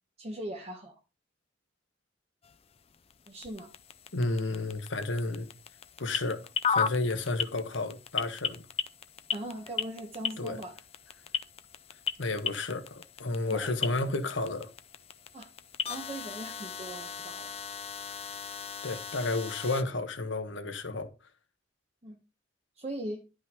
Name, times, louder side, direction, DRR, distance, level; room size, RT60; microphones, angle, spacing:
voice 1, 0.2-1.0 3.3-3.7 9.3-10.8 13.5-13.7 15.3-15.5 15.9-17.6 22.0-22.2 22.8-23.2, right 1 dB, 35° right, 1.0 m, -40 dB
sound 1, 2.4-19.8, left 7 dB, 30° left, 0.5 m, -37 dB
voice 2, 4.1-5.5 6.0-8.6 10.4-10.6 12.2-14.7 18.8-21.1, left 2 dB, 80° left, 1.3 m, -32 dB
11.5 x 5.4 x 3.6 m
head